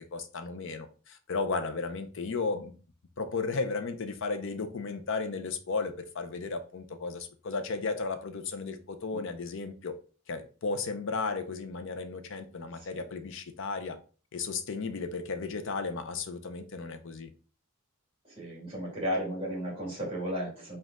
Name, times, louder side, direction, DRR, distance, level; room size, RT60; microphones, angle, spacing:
voice 1, 0.0-2.7 3.2-10.0 10.3-14.0 14.3-17.3, left 4 dB, 60° left, 0.6 m, -34 dB
voice 2, 18.3-20.8, equal, 25° right, 1.9 m, -34 dB
5.1 x 2.4 x 3.6 m
head